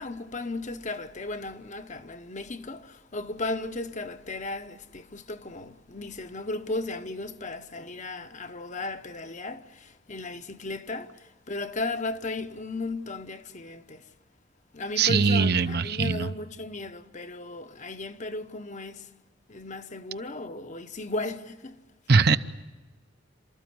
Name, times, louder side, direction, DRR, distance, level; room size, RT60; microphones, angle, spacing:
voice 1, 0.0-14.1 14.7-19.1 19.5-21.8, left 2 dB, 40° left, 0.9 m, -35 dB
voice 2, 15.0-16.3 22.1-22.4, right 5 dB, 55° right, 0.8 m, -21 dB
29.5 x 13.5 x 9.4 m
head